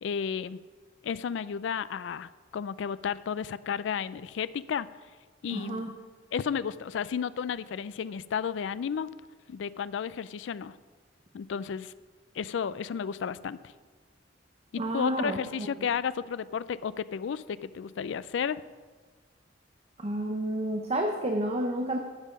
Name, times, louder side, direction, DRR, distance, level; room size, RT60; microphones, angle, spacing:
voice 1, 0.0-0.6 1.0-4.9 5.4-5.9 6.3-9.1 9.5-10.8 11.3-11.9 12.3-13.6 14.7-18.6, left 7 dB, 75° left, 17 dB, 0.3 m, -32 dB
voice 2, 5.5-6.0 14.8-15.7 20.0-22.0, right 1 dB, 35° right, 3 dB, 0.7 m, -30 dB
10.5 x 7.4 x 5.3 m, 1.4 s
head